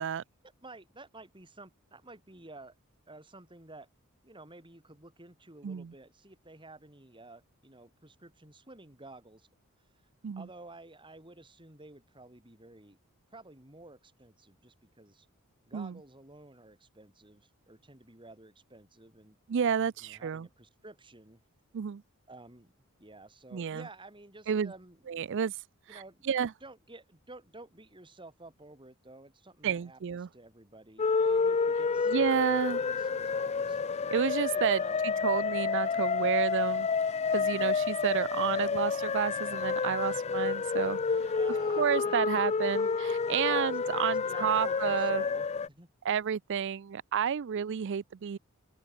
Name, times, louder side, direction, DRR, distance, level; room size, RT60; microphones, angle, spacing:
voice 1, 0.4-2.7 3.1-3.9 4.2-9.5 10.4-13.0 13.3-15.3 15.6-19.4 20.0-21.4 22.3-22.7 23.0-25.0 25.9-26.2 26.6-30.0 30.3-33.8 34.5-35.0 37.4-37.9 41.3-42.4 43.5-45.9, right 2 dB, 20° right, 4.0 m, -52 dB
voice 2, 5.6-5.9 10.2-10.5 15.7-16.0 19.5-20.5 21.7-22.0 23.5-23.9 24.5-24.7 25.1-25.5 25.9-26.0 26.2-26.5 29.6-30.3 32.1-32.8 34.1-36.9 37.3-41.4 41.8-45.2 46.0-48.4, right 7 dB, 55° right, 0.4 m, -30 dB
sound 1, 31.0-45.7, left 5 dB, 30° left, 0.4 m, -29 dB
open air
head